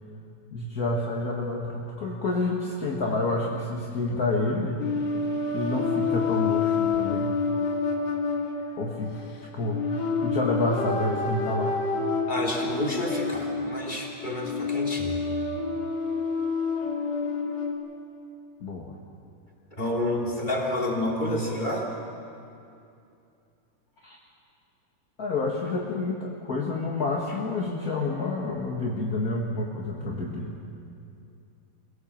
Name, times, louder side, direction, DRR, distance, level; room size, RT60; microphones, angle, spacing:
voice 1, 0.5-4.8 5.5-7.3 8.8-9.3 9.5-11.8 18.6-18.9 21.2-21.5 24.0-24.2 25.2-30.5, left 2 dB, 40° left, -2 dB, 1.5 m, -29 dB
sound 1, 4.8-17.7, left 4 dB, 80° left, 3.5 m, -28 dB
voice 2, 12.3-15.2 19.8-21.9, left 1 dB, 15° left, -2 dB, 2.9 m, -29 dB
25.0 x 17.5 x 7.4 m, 2.6 s
omnidirectional pair, 3.7 m